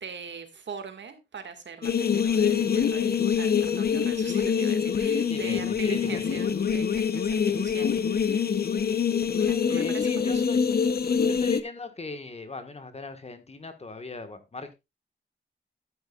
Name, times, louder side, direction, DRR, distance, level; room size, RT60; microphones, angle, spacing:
voice 1, 0.0-8.6 9.4-10.5, right 5 dB, 75° right, 2.0 m, -42 dB
sound 1, 1.8-11.6, left 7 dB, 55° left, 0.8 m, -25 dB
voice 2, 5.3-6.2 7.5-7.6 9.7-10.6 11.3-14.7, left 3 dB, 35° left, 1.5 m, -39 dB
13.0 x 9.4 x 2.4 m
wide cardioid pair, 150°, 19 cm